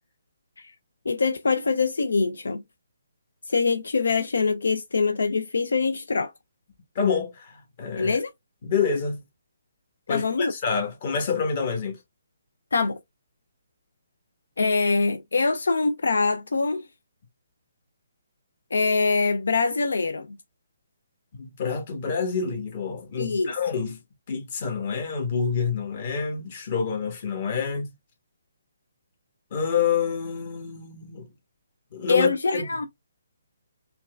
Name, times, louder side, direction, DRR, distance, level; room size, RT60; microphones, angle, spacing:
voice 1, 1.1-2.6 3.5-6.3 8.0-8.3 10.1-10.5 12.7-13.0 14.6-16.9 18.7-20.4 23.2-23.5 32.1-32.9, left 4 dB, 80° left, 0.3 m, -24 dB
voice 2, 6.9-8.2 8.6-9.2 10.1-12.0 21.3-24.0 24.3-27.9 29.5-31.3 31.9-32.6, left 6 dB, 40° left, 1.2 m, -27 dB
4.4 x 2.3 x 2.2 m
hypercardioid pair, 150°, 0 cm